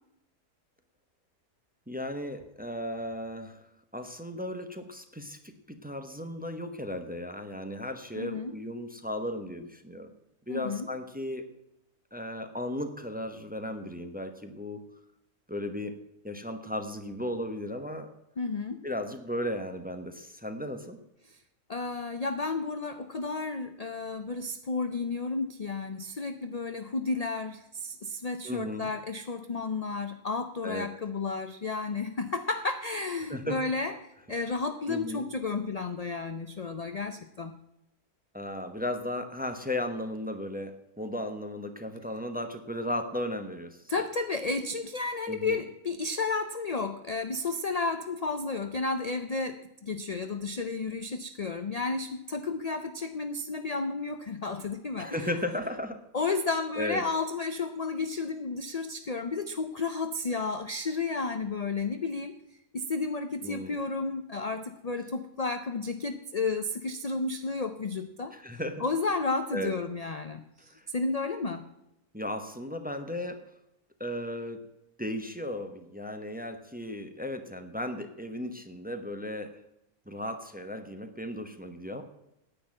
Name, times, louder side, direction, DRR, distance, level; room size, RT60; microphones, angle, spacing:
voice 1, 1.9-3.6 3.9-10.1 10.5-11.5 12.1-14.8 15.5-16.0 16.2-18.1 18.8-21.0 28.4-28.9 30.6-30.9 33.3-33.6 34.9-35.3 38.3-43.9 45.3-45.6 55.0-56.0 56.8-57.0 63.4-63.8 68.3-68.8 69.5-69.7 70.7-70.9 72.1-73.4 74.0-74.6 75.0-79.6 80.1-82.0, left 1 dB, 5° right, 7 dB, 0.9 m, -35 dB
voice 2, 8.2-8.5 10.5-10.9 18.4-18.8 21.7-33.9 34.3-37.5 43.9-55.4 56.1-62.3 62.7-68.3 68.8-70.4 70.9-71.7, left 3 dB, 45° left, 9 dB, 0.5 m, -32 dB
9.9 x 8.9 x 7.6 m, 0.87 s
omnidirectional pair, 1.5 m